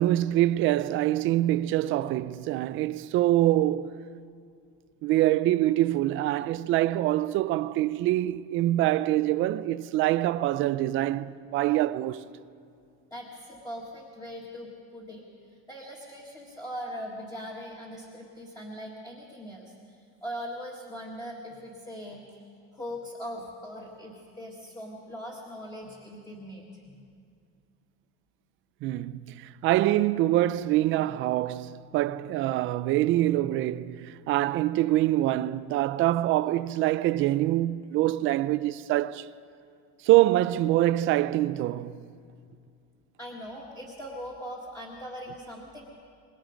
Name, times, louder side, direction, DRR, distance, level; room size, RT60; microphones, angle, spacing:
voice 1, 0.0-4.0 5.0-12.2 28.8-39.3 40.0-42.0, right 15 dB, 40° right, 0.5 m, -25 dB
voice 2, 13.1-15.2 15.5-22.5 22.7-26.9 43.2-45.8, equal, 10° left, 1.6 m, -40 dB
25.5 x 21.0 x 5.1 m
cardioid pair, 170°, 31 cm